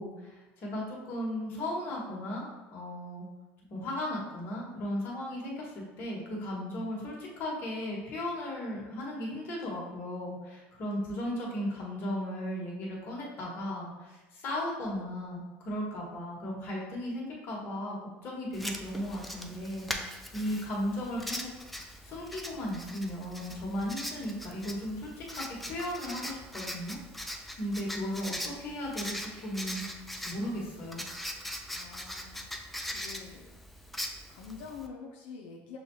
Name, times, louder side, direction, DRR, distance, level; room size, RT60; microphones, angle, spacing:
voice 1, 0.0-3.2 3.7-18.0 18.2-21.5 22.0-29.8 30.2-31.1, left 1 dB, 45° left, -3 dB, 1.3 m, -36 dB
Writing, 18.5-34.9, equal, ahead, 0.4 m, -41 dB
voice 2, 31.7-33.6 34.3-35.8, left 6 dB, 85° left, -1 dB, 0.5 m, -46 dB
6.2 x 2.3 x 3.0 m, 1.1 s
supercardioid pair, 120°, 5 cm